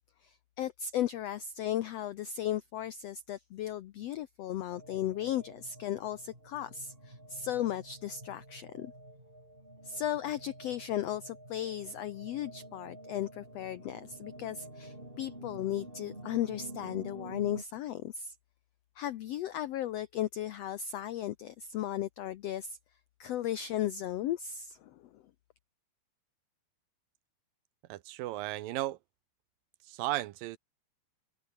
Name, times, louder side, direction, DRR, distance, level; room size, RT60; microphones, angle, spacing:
voice 1, 0.2-8.9 9.8-18.3 19.0-22.8 23.2-24.9, left 11 dB, 80° left, 1.4 m, -36 dB
sound 1, 4.7-17.6, right 1 dB, 15° right, 8.2 m, -49 dB
voice 2, 27.9-29.0 29.8-30.6, right 16 dB, 85° right, 2.7 m, -35 dB
omnidirectional pair, 3.9 m